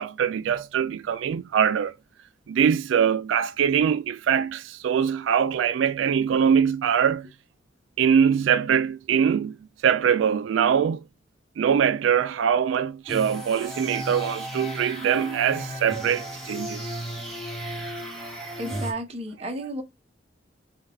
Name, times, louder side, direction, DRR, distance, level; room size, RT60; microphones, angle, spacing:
voice 1, 0.0-1.9 2.5-7.3 8.0-9.6 9.8-11.0 11.6-17.0, right 8 dB, 90° right, 0.3 m, -23 dB
sound 1, 13.1-18.9, right 1 dB, ahead, 1.2 m, -34 dB
voice 2, 18.6-19.8, right 1 dB, 35° right, 0.8 m, -32 dB
5.4 x 2.3 x 3.5 m
head